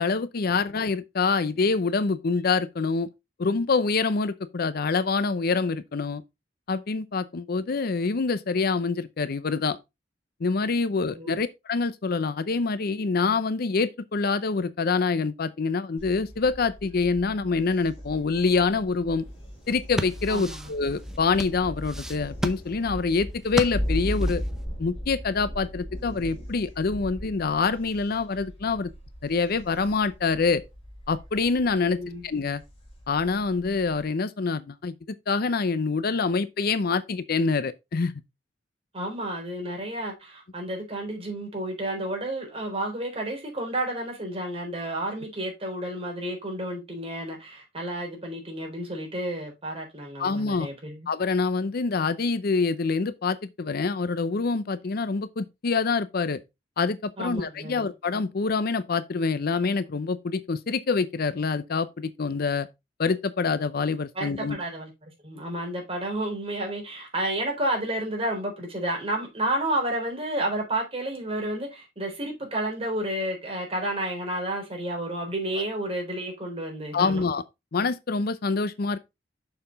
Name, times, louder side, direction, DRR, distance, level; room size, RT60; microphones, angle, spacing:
voice 1, 0.0-3.1 3.4-6.2 6.7-9.8 10.4-19.2 19.7-24.4 24.8-28.9 29.2-30.6 31.1-32.6 33.1-34.9 35.3-38.1 50.2-50.7 51.1-56.4 56.8-62.7 63.0-64.6 76.9-77.4 77.7-79.0, left 4 dB, 55° left, 0.5 m, -26 dB
Thunder, 16.0-34.0, equal, 30° left, 3.4 m, -37 dB
sound 1, 19.6-24.7, equal, 5° right, 0.7 m, -34 dB
voice 2, 20.3-20.7 31.9-32.2 38.9-51.1 57.2-57.9 64.1-77.2, right 1 dB, 30° right, 3.7 m, -31 dB
6.8 x 5.8 x 4.0 m
head